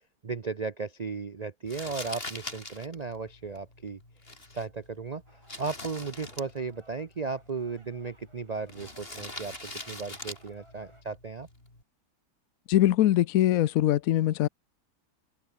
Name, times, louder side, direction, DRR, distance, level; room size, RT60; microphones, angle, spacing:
voice 1, 0.2-4.0 4.5-5.2 5.6-9.5 9.9-11.5, right 4 dB, 40° right, 0.6 m, -35 dB
Crumpling crinkling, 1.7-11.8, left 2 dB, 35° left, 5.6 m, -44 dB
sound 1, 5.3-11.0, right 1 dB, 15° right, 5.5 m, -60 dB
voice 2, 12.7-14.5, left 13 dB, 65° left, 1.0 m, -22 dB
open air
omnidirectional pair, 1.7 m